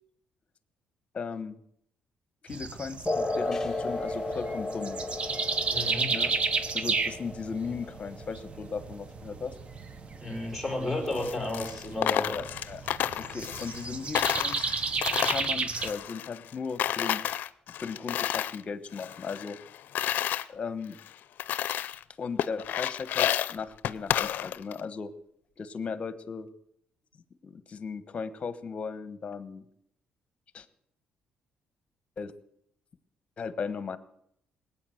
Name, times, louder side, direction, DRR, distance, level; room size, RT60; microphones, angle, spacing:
voice 1, 1.1-1.6 2.4-5.0 6.1-6.3 6.7-9.5 12.3-12.8 13.2-17.2 17.8-19.6 20.5-21.0 22.2-25.1 25.6-26.5 27.4-29.6 30.5-30.7 32.2-32.3 33.4-34.0, left 5 dB, 35° left, 13 dB, 1.2 m, -37 dB
sound 1, 2.5-15.9, right 4 dB, 35° right, 1.0 m, -33 dB
sound 2, 3.1-10.1, left 2 dB, 15° left, 0.9 m, -35 dB
voice 2, 5.7-6.2 10.2-12.4, left 2 dB, 5° right, 1 dB, 4.7 m, -32 dB
Coin (dropping), 11.1-13.9 14.1-16.5 16.8-18.6 18.9-20.4 21.0-21.1 21.4-22.0 22.4-24.8, left 11 dB, 65° left, 0.5 m, -31 dB
20.0 x 9.0 x 7.9 m, 0.73 s
cardioid pair, 130°, 3 cm